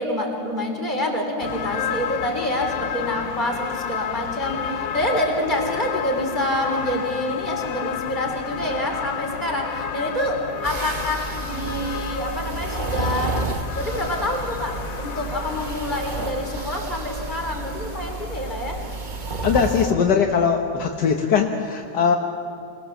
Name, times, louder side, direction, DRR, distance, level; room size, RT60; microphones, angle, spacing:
voice 1, 0.0-13.4 13.8-18.8, left 1 dB, 25° left, 1 dB, 4.0 m, -27 dB
sound 1, 1.4-19.6, left 9 dB, 60° left, 1.2 m, -32 dB
sound 2, 10.6-19.9, right 3 dB, 35° right, 1.0 m, -31 dB
voice 2, 19.4-22.2, left 6 dB, 80° left, 2 dB, 1.8 m, -20 dB
26.5 x 20.0 x 7.3 m, 2.5 s
omnidirectional pair, 1.8 m